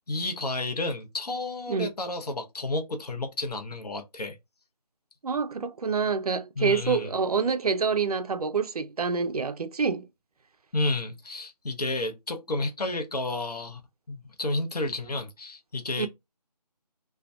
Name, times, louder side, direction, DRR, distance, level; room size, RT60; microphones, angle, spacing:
voice 1, 0.1-4.4 6.6-7.1 10.7-13.8 14.1-16.1, left 2 dB, 70° left, 0.7 m, -31 dB
voice 2, 5.2-10.1 16.0-16.1, right 5 dB, 65° right, 0.4 m, -27 dB
2.6 x 2.1 x 2.2 m
figure-of-eight pair, 180°, 21 cm